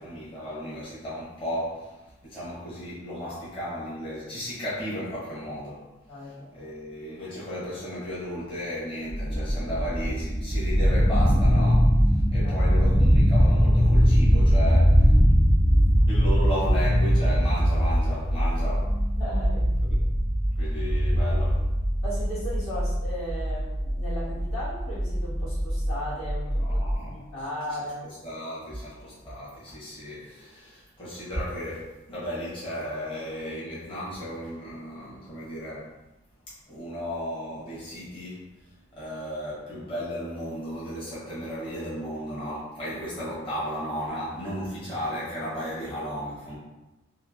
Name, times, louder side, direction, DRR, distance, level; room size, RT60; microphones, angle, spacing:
voice 1, 0.0-5.8 6.2-15.4 16.1-18.9 19.9-20.0 20.5-21.6 26.6-27.2 27.7-35.9 36.7-38.4 38.9-46.6, equal, 25° left, -10 dB, 0.9 m, -34 dB
sound 1, 9.1-26.9, equal, 60° left, 0.8 m, -22 dB
voice 2, 12.1-12.7 19.1-19.8 21.2-21.4 22.0-28.1, equal, 90° left, -10 dB, 1.5 m, -36 dB
3.0 x 2.5 x 2.4 m, 1.0 s
head